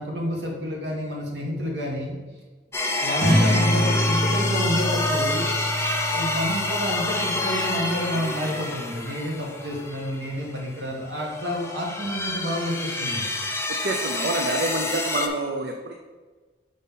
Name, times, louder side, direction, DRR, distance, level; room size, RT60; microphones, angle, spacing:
voice 1, 0.0-2.2 3.0-5.5 6.1-13.3, equal, 80° right, -1 dB, 1.7 m, -29 dB
sound 1, 2.7-10.7 11.1-15.3, left 2 dB, 15° left, 0.5 m, -28 dB
sound 2, 3.2-8.2, equal, 30° right, 1.8 m, -26 dB
voice 2, 13.8-15.9, right 2 dB, 65° right, 2 dB, 0.5 m, -27 dB
5.2 x 4.1 x 5.5 m, 1.3 s
head